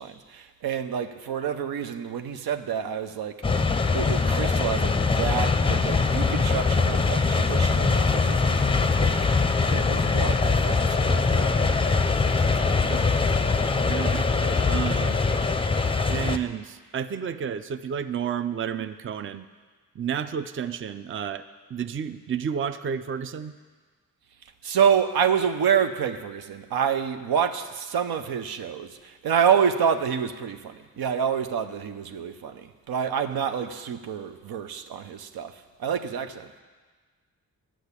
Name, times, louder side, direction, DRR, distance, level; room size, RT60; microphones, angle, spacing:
voice 1, 0.0-3.3 3.9-9.2 9.7-12.1 12.6-12.7 14.1-14.2 24.6-36.5, right 7 dB, 90° right, 8 dB, 0.7 m, -28 dB
sound 1, 3.4-16.4, left 4 dB, 15° left, 0.5 m, -22 dB
voice 2, 13.8-15.2 16.1-19.5 20.0-21.4 21.7-23.5, right 7 dB, 35° right, 12 dB, 0.5 m, -31 dB
10.5 x 6.1 x 8.2 m, 1.4 s
cardioid pair, 75°, 36 cm